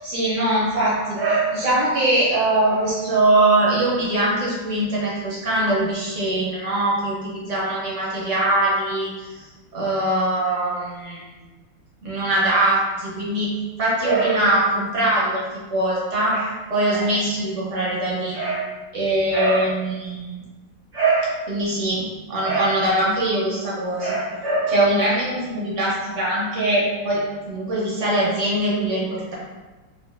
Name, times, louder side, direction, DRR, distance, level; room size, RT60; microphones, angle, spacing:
voice 1, 0.0-9.5 9.7-11.3 12.0-13.5 13.8-15.4 15.7-18.7 18.9-20.3 20.9-27.2 27.5-29.3, right 1 dB, 50° right, -6 dB, 1.0 m, -22 dB
4.4 x 2.4 x 2.4 m, 1.3 s
omnidirectional pair, 2.1 m